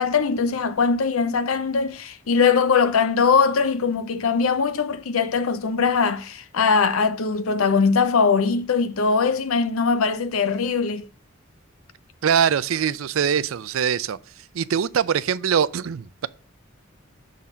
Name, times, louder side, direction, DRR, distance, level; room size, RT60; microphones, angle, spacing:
voice 1, 0.0-11.1, left 5 dB, 85° left, 0.6 m, -21 dB
voice 2, 12.2-14.2 14.5-16.3, right 8 dB, 80° right, 0.4 m, -22 dB
7.3 x 4.0 x 5.5 m
head